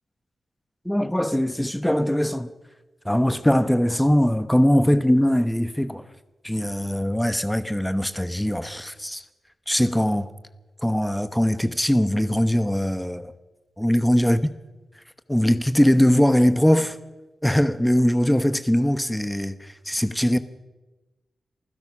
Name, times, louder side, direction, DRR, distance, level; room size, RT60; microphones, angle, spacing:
voice 1, 0.8-2.5 3.0-6.1 6.4-9.2 9.7-10.3 10.8-13.3 13.8-14.4 15.3-17.0 17.4-20.4, equal, 5° left, 12 dB, 1.0 m, -21 dB
28.0 x 15.5 x 6.1 m, 1.1 s
wide cardioid pair, 170°, 0 cm